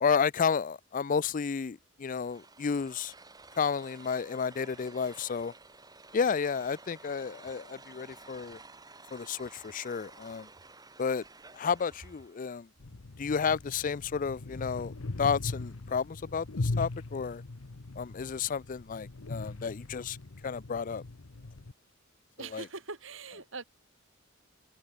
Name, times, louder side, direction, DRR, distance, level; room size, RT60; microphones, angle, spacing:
voice 1, 0.0-3.1 3.6-5.5 6.1-8.6 9.1-10.5 11.0-11.2 11.5-12.7 13.2-17.4 18.0-20.2 20.4-21.0 22.5-22.6, left 6 dB, 40° left, 0.4 m, -31 dB
sound 1, 2.1-12.5, right 3 dB, 20° right, 3.2 m, -53 dB
sound 2, 12.8-21.7, left 2 dB, 90° left, 1.0 m, -39 dB
voice 2, 22.4-23.6, right 4 dB, 65° right, 2.7 m, -42 dB
head